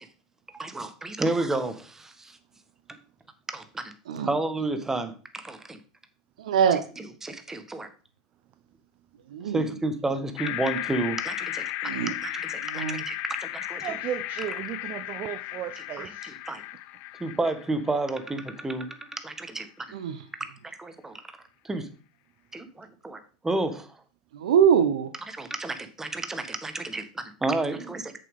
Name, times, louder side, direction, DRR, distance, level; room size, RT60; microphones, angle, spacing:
voice 1, 0.5-2.4 3.5-3.9 4.2-5.8 7.0-7.9 9.5-11.9 12.2-13.9 16.0-16.6 17.2-19.9 20.6-21.4 21.6-21.9 22.5-23.9 25.3-28.1, right 2 dB, 10° right, 1.3 m, -31 dB
voice 2, 6.4-6.8 9.3-9.6 11.8-12.1 12.7-13.0 19.9-20.2 24.3-25.1, right 8 dB, 80° right, 0.9 m, -23 dB
sound 1, 10.4-18.6, left 16 dB, 55° left, 0.6 m, -35 dB
voice 3, 13.8-16.3, right 11 dB, 45° right, 0.6 m, -35 dB
8.4 x 6.9 x 3.7 m
hypercardioid pair, 100°, 4 cm